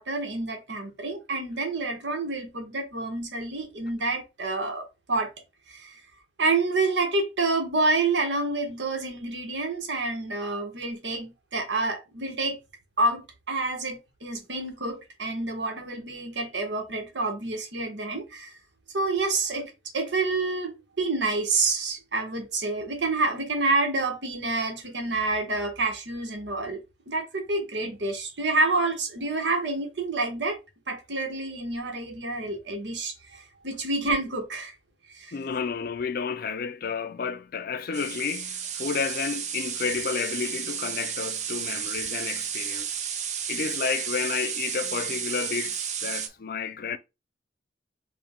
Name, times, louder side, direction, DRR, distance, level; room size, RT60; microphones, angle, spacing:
voice 1, 0.0-5.3 5.7-6.0 6.4-12.6 13.0-18.5 18.9-26.8 27.1-30.6 30.9-34.7 35.1-35.3, right 3 dB, 90° right, 1.4 m, -28 dB
voice 2, 35.3-42.9 43.5-47.0, left 6 dB, 55° left, 0.5 m, -31 dB
sound 1, 37.9-46.3, right 8 dB, 40° right, 0.6 m, -32 dB
5.1 x 2.6 x 3.6 m
head